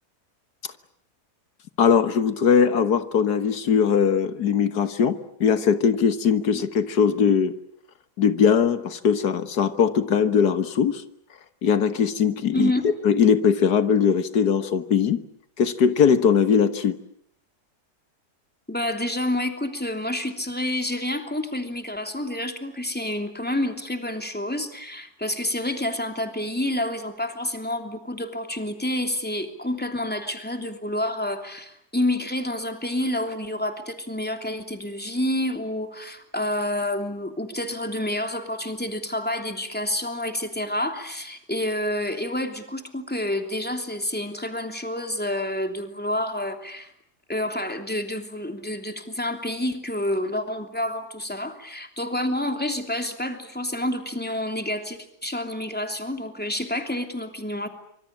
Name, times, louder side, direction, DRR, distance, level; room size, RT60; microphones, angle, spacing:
voice 1, 1.8-7.6 8.2-11.0 11.6-15.2 15.6-17.0, left 7 dB, 85° left, 11 dB, 1.9 m, -20 dB
voice 2, 18.7-46.9 47.3-57.7, left 1 dB, 5° left, 6 dB, 3.0 m, -28 dB
25.5 x 25.0 x 8.8 m, 0.70 s
omnidirectional pair, 1.7 m